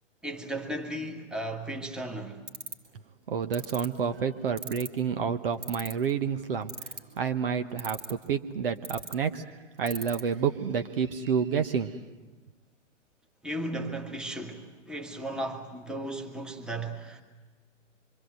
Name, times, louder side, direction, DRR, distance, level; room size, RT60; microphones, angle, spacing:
voice 1, 0.2-2.4 13.4-17.2, right 1 dB, ahead, 1.6 m, -35 dB
sound 1, 2.5-2.9 3.5-3.9 4.6-5.0 5.6-6.1 6.7-7.2 7.8-8.3 8.8-9.1 9.9-10.2, right 4 dB, 70° right, 2.8 m, -36 dB
voice 2, 3.3-12.0, right 6 dB, 50° right, 1.1 m, -29 dB
26.0 x 24.5 x 7.8 m
figure-of-eight pair, 120°, 37 cm